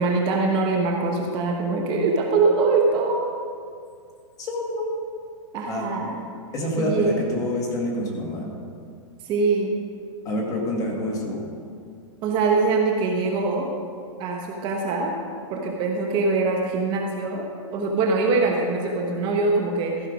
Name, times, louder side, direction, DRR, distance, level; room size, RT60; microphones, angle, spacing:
voice 1, 0.0-3.3 5.5-6.2 6.8-7.3 9.2-9.8 12.2-13.7 14.2-15.1 15.5-20.1, right 3 dB, 30° right, 1 dB, 0.9 m, -23 dB
voice 2, 4.4-4.9 5.7-5.9 6.5-8.5 10.3-11.5, left 1 dB, 20° left, -1 dB, 1.8 m, -27 dB
14.5 x 5.7 x 5.0 m, 2.3 s
hypercardioid pair, 150°, 16 cm